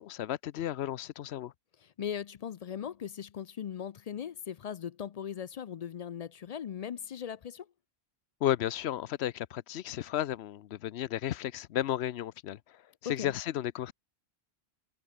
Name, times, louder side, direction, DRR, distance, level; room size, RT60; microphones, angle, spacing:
voice 1, 0.0-1.5 8.4-12.6 13.0-13.9, left 12 dB, 75° left, 0.9 m, -33 dB
voice 2, 1.8-7.7 13.0-13.3, left 8 dB, 55° left, 0.4 m, -39 dB
omnidirectional pair, 1.1 m